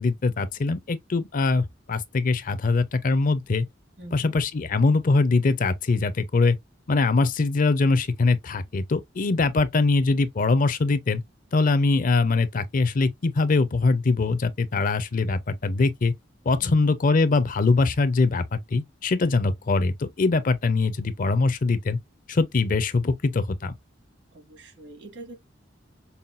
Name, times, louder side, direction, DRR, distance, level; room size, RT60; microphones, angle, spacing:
voice 1, 0.0-3.7 4.1-6.6 6.9-11.2 11.5-16.1 16.5-22.0 22.3-23.7, left 3 dB, 45° left, 0.5 m, -22 dB
voice 2, 4.0-4.3 16.6-17.0 24.3-25.4, right 2 dB, 65° right, 1.6 m, -43 dB
5.5 x 2.2 x 2.4 m
head